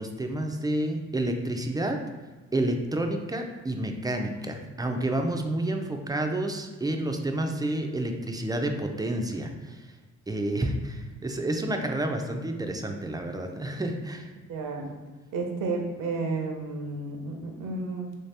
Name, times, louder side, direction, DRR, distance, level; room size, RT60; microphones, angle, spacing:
voice 1, 0.0-2.0 2.5-9.9 10.3-14.3, right 1 dB, 15° right, 4 dB, 0.3 m, -29 dB
voice 2, 14.5-14.9 15.3-18.1, right 3 dB, 85° right, 2 dB, 0.7 m, -32 dB
3.1 x 2.7 x 3.3 m, 1.2 s
cardioid pair, 90°, 31 cm